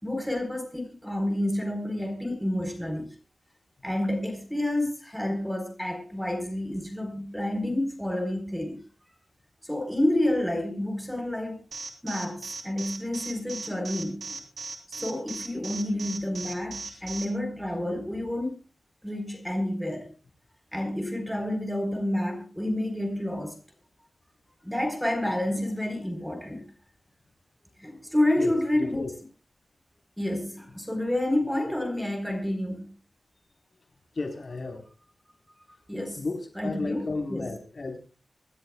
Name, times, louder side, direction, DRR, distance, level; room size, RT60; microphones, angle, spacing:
voice 1, 0.0-3.1 3.8-8.8 9.6-11.6 12.0-14.3 14.9-18.6 19.0-20.1 20.7-23.6 24.6-26.7 27.8-29.0 30.2-32.9 35.9-36.2 36.6-37.4, left 1 dB, ahead, 4.2 m, -29 dB
Alarm, 11.7-17.2, right 3 dB, 70° right, 3.4 m, -37 dB
voice 2, 28.4-29.1 34.1-34.8 36.1-38.0, left 3 dB, 55° left, 4.1 m, -33 dB
26.0 x 13.0 x 2.3 m
wide cardioid pair, 105°, 0 cm